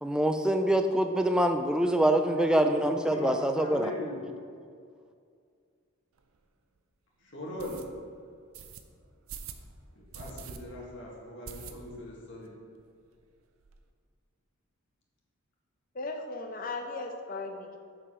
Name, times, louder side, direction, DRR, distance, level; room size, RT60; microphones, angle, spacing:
voice 1, 0.0-3.9, right 1 dB, 5° right, 6 dB, 0.3 m, -25 dB
voice 2, 2.1-4.3 7.3-7.8 10.0-12.5, left 1 dB, 55° left, -4 dB, 1.9 m, -40 dB
sound 1, 6.2-6.3 6.8-6.9 7.6-7.9 8.5-8.8 9.3-9.6 10.1-10.6 10.9-11.0 11.5-12.1 12.5-12.6 12.8-12.9 13.2-13.8, right 6 dB, 75° right, 0.6 m, -44 dB
voice 3, 15.9-17.8, left 3 dB, 40° left, 4 dB, 0.7 m, -37 dB
7.3 x 5.0 x 5.6 m, 2.2 s
head